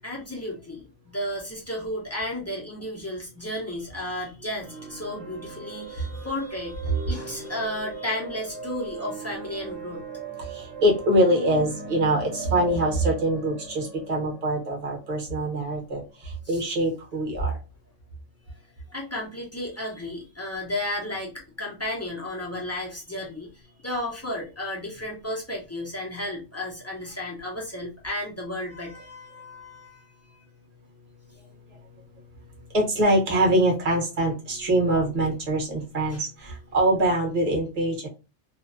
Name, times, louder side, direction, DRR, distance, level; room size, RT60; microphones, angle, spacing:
voice 1, 0.0-10.0 16.4-16.6 18.9-23.5 23.8-30.0 36.1-36.3, left 1 dB, 25° left, -4 dB, 0.3 m, -33 dB
sound 1, 4.6-16.3, right 4 dB, 70° right, 1.0 m, -40 dB
voice 2, 10.4-17.5 32.7-38.1, right 1 dB, 35° right, -1 dB, 0.8 m, -24 dB
2.5 x 2.1 x 2.5 m, 0.30 s
omnidirectional pair, 1.4 m